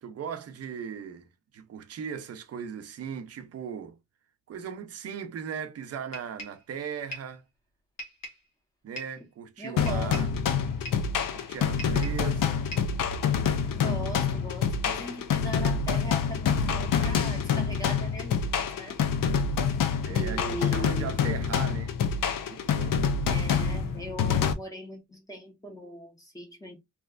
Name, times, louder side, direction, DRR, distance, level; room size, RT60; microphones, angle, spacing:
voice 1, 0.0-4.0 4.5-7.4 8.8-10.3 11.3-12.7 20.0-21.9 22.4-23.0, right 7 dB, 50° right, 0.6 m, -38 dB
sound 1, 6.1-6.6 7.1-7.4 8.0-8.5 9.0-9.2 9.9-10.4 10.8-11.1 11.8-12.3 12.7-13.0, equal, 55° left, 1.4 m, -41 dB
voice 2, 9.6-10.2 13.8-19.0 20.1-21.2 23.3-26.8, right 1 dB, 10° left, 1.0 m, -39 dB
sound 2, 9.8-24.5, left 6 dB, 80° left, 0.6 m, -27 dB
3.2 x 2.9 x 2.4 m
wide cardioid pair, 160°, 33 cm